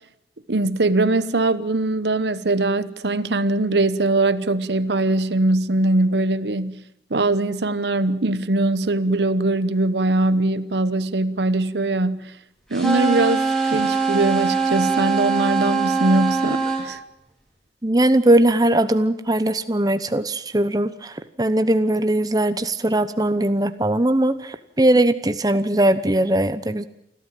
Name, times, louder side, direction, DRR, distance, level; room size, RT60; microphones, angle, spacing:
voice 1, 0.5-6.8 7.1-12.3 12.7-17.0, right 2 dB, 75° right, 1.0 m, -21 dB
sound 1, 12.7-16.9, right 4 dB, 5° left, 4.0 m, -22 dB
voice 2, 17.8-26.9, right 1 dB, 20° right, 0.9 m, -20 dB
28.5 x 12.5 x 9.2 m
head